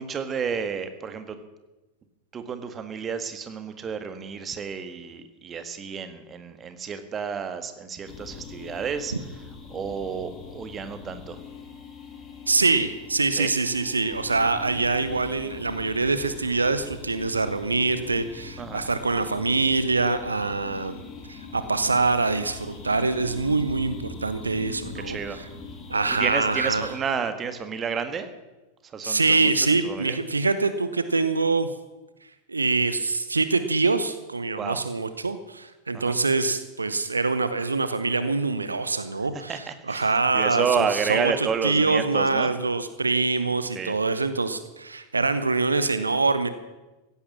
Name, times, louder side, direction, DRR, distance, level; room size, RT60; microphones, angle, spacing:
voice 1, 0.0-1.4 2.3-9.1 9.7-11.4 13.4-13.5 18.6-18.8 24.9-25.4 26.2-28.3 28.8-29.5 29.8-30.2 34.6-34.8 35.9-36.2 39.5-42.5 43.7-44.0, right 6 dB, 25° right, 10 dB, 1.6 m, -30 dB
sound 1, 8.1-27.0, left 5 dB, 30° left, 2.7 m, -42 dB
voice 2, 12.5-21.0 21.3-25.2 25.9-26.9 29.0-31.7 32.5-46.5, right 3 dB, 80° right, 12 dB, 0.9 m, -24 dB
16.0 x 11.5 x 7.3 m, 1.1 s
figure-of-eight pair, 90°, 0 cm